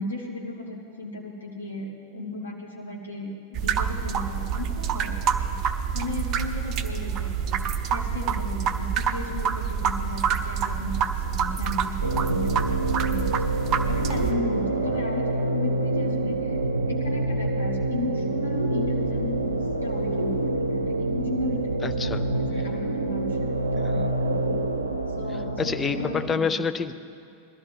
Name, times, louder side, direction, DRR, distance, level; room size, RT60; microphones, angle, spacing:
voice 1, 0.0-5.2 5.5-5.6 5.9-7.6 7.9-13.6 13.9-16.6 16.9-19.5 19.8-24.6 25.2-26.6, left 2 dB, 75° left, -2 dB, 1.9 m, -35 dB
sound 1, 3.6-14.3, right 7 dB, 35° right, 0.7 m, -27 dB
sound 2, 12.0-26.4, right 2 dB, 80° right, 0.6 m, -27 dB
voice 2, 21.8-22.2 25.6-26.9, left 5 dB, 20° left, 10 dB, 0.6 m, -27 dB
21.0 x 13.0 x 3.4 m, 2.5 s
figure-of-eight pair, 90°, 0 cm